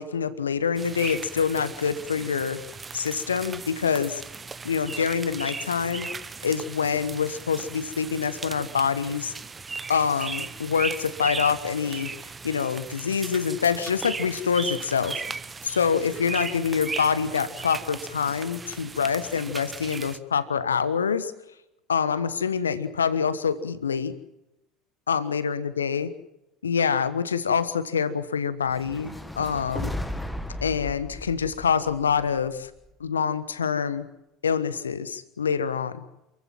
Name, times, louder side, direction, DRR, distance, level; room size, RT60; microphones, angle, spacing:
voice 1, 0.0-2.6 2.9-4.2 4.6-6.1 6.4-9.3 9.9-12.1 12.4-15.2 15.6-21.3 21.9-24.1 25.1-26.1 26.6-29.9 30.6-32.7 33.0-34.1 34.4-36.0, left 6 dB, 80° left, 15 dB, 1.2 m, -26 dB
sound 1, 0.8-20.2, right 4 dB, 20° right, 1.3 m, -37 dB
sound 2, 28.6-32.9, left 1 dB, 5° left, 1.8 m, -36 dB
28.0 x 15.0 x 7.7 m, 0.90 s
figure-of-eight pair, 70°, 0 cm